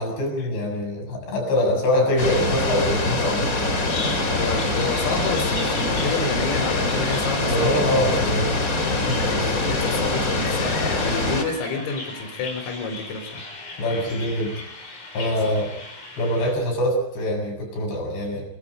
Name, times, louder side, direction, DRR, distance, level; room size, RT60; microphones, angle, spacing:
voice 1, 0.0-3.5 7.4-8.5 8.9-9.3 13.8-14.6 15.1-15.7 16.2-18.5, left 1 dB, 55° left, 2 dB, 9.4 m, -24 dB
sound 1, 2.2-11.4, left 2 dB, 25° left, 2.3 m, -24 dB
Bird vocalization bird call bird song, 3.7-16.5, left 3 dB, 40° left, 7.1 m, -37 dB
voice 2, 4.3-8.1 9.2-13.4 15.4-15.5, left 4 dB, 85° left, 6 dB, 6.7 m, -29 dB
27.0 x 24.0 x 5.3 m, 0.74 s
omnidirectional pair, 5.8 m